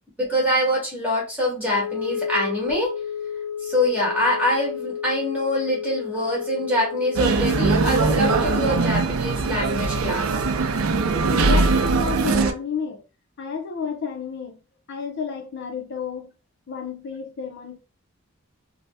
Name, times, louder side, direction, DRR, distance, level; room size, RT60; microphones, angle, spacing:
voice 1, 0.2-2.9 3.6-10.3, left 1 dB, 5° right, 1.3 m, -24 dB
Wind instrument woodwind instrument, 1.6-8.7, left 8 dB, 15° left, 1.0 m, -32 dB
sound 1, 7.2-12.5, right 3 dB, 75° right, 0.4 m, -21 dB
voice 2, 11.1-13.0 13.4-14.6 14.9-16.3 16.7-17.8, left 6 dB, 55° left, 0.5 m, -31 dB
2.7 x 2.0 x 3.3 m
head